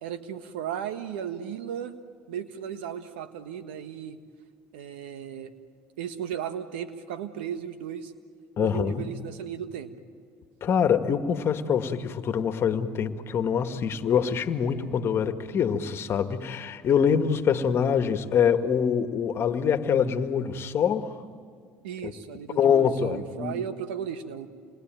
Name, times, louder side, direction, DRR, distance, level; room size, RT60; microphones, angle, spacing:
voice 1, 0.0-2.0 2.3-4.2 4.7-5.5 6.0-8.1 8.6-9.9 21.8-24.5, right 9 dB, 90° right, 9 dB, 1.5 m, -35 dB
voice 2, 8.6-9.2 10.6-21.2 22.0-22.1 22.5-23.6, left 7 dB, 50° left, 8 dB, 1.7 m, -25 dB
28.0 x 21.5 x 9.2 m, 2.2 s
supercardioid pair, 80°, 6 cm